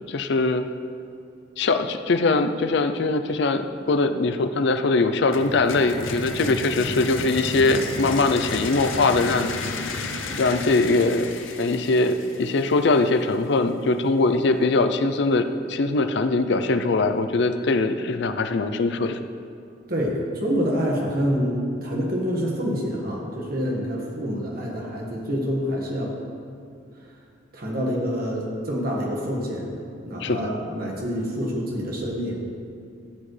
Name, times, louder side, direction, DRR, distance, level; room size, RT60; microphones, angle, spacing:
voice 1, 0.1-0.6 1.6-9.5 10.4-11.3 11.6-19.2 30.2-30.5, left 3 dB, 60° left, 9 dB, 0.5 m, -22 dB
sound 1, 5.3-13.1, left 3 dB, 90° left, 0.8 m, -32 dB
voice 2, 19.9-26.1 27.5-29.7 30.0-32.4, equal, 50° right, -2 dB, 1.7 m, -27 dB
13.5 x 7.3 x 3.3 m, 2.5 s
head